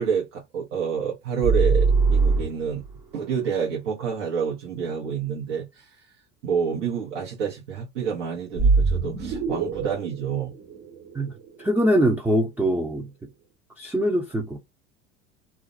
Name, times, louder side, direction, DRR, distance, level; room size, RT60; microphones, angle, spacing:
voice 1, 0.0-2.8 3.1-5.9 6.4-10.5, right 7 dB, 80° right, 0.9 m, -28 dB
sound 1, 1.4-3.0 8.6-11.6, right 4 dB, 65° right, 1.3 m, -22 dB
voice 2, 11.6-13.1 13.8-14.6, equal, 5° right, 0.4 m, -23 dB
2.4 x 2.0 x 2.5 m
hypercardioid pair, 85°, 36 cm